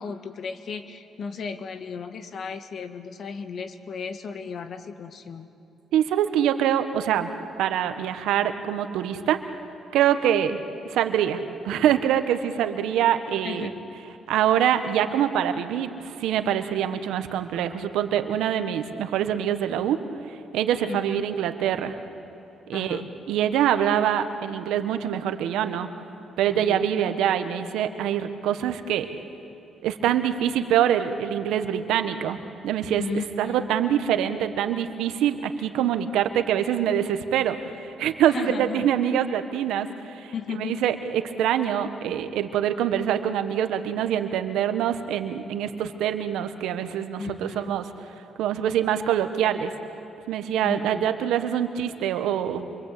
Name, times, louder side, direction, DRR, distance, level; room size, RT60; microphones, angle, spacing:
voice 1, 0.0-5.6 13.4-13.7 20.9-21.3 22.7-23.1 26.5-26.9 33.0-33.7 38.3-38.9 40.3-40.8 47.2-47.7 50.6-51.1, left 5 dB, 55° left, 9 dB, 1.7 m, -35 dB
voice 2, 5.9-7.3 7.6-9.4 9.9-10.6 10.9-13.7 14.3-20.0 20.5-22.0 22.7-23.0 23.3-25.9 26.4-29.1 29.8-32.4 32.6-33.0 33.4-37.6 37.8-39.9 40.1-47.8 48.4-49.7 50.3-52.7, right 10 dB, 85° right, 9 dB, 1.4 m, -24 dB
27.5 x 24.5 x 8.5 m, 2.9 s
cardioid pair, 90°, 0 cm